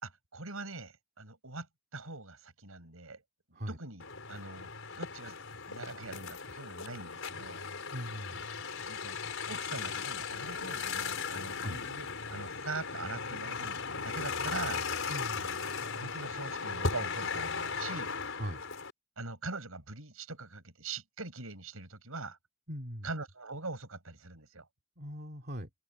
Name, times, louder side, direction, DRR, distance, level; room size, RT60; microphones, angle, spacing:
voice 1, 0.0-1.7 1.9-3.2 3.7-4.7 4.9-5.4 5.7-7.6 8.9-9.2 9.5-14.8 16.0-18.1 19.2-22.4 23.0-24.7, right 3 dB, 75° right, 5.6 m, -42 dB
sound 1, 4.0-18.9, left 5 dB, 65° left, 5.0 m, -37 dB
voice 2, 7.9-8.5 11.6-11.8 15.1-15.6 18.4-18.6 22.7-23.1 25.0-25.7, equal, 45° right, 2.6 m, -40 dB
head